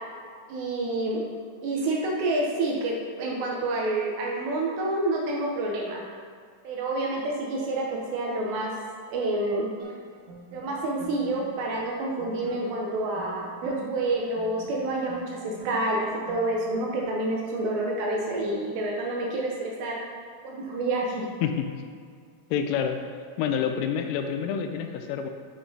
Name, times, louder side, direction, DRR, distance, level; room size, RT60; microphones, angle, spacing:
voice 1, 0.5-1.2 1.6-6.0 6.6-8.7 9.1-9.7 10.5-20.0 20.4-21.2, right 2 dB, 75° right, -2 dB, 2.6 m, -28 dB
sound 1, 9.8-17.4, right 4 dB, 55° right, 1.4 m, -47 dB
voice 2, 21.4-21.7 22.5-23.1 23.4-25.3, left 7 dB, 85° left, 6 dB, 3.0 m, -28 dB
9.5 x 8.2 x 2.8 m, 2.1 s
omnidirectional pair, 5.9 m